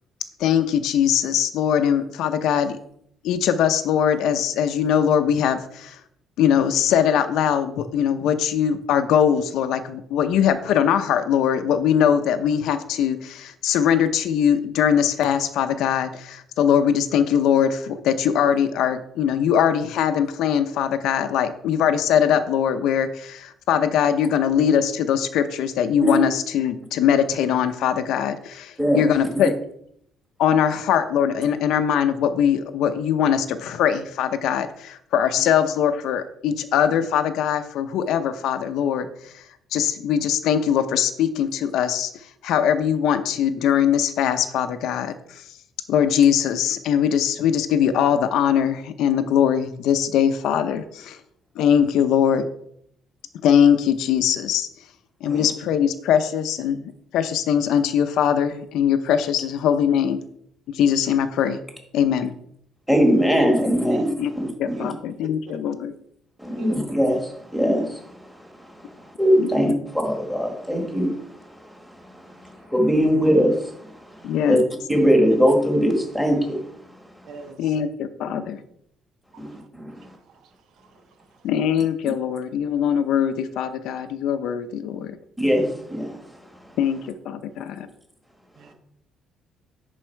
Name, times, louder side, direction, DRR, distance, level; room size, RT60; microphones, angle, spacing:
voice 1, 0.4-2.8 3.2-6.0 6.4-29.5 30.4-39.4 39.7-42.1 42.4-45.4 45.9-51.2 51.6-52.5 53.4-54.7 55.2-60.2 60.7-61.6 61.9-62.3 64.2-64.3 64.6-65.9 69.4-69.5 74.2-74.6 77.6-78.6 81.4-85.2 86.8-87.0 87.2-87.9, left 8 dB, 75° left, 10 dB, 0.7 m, -21 dB
voice 2, 62.9-64.9 66.4-71.7 72.1-74.6 74.9-76.6 79.4-80.0 85.4-86.2, equal, ahead, 2 dB, 1.6 m, -22 dB
voice 3, 66.5-66.9 77.2-77.8 79.3-79.4 80.3-80.5 80.8-81.0 88.6-88.7, right 3 dB, 70° right, 7 dB, 1.0 m, -39 dB
11.0 x 4.1 x 4.5 m, 0.70 s
cardioid pair, 150°, 0 cm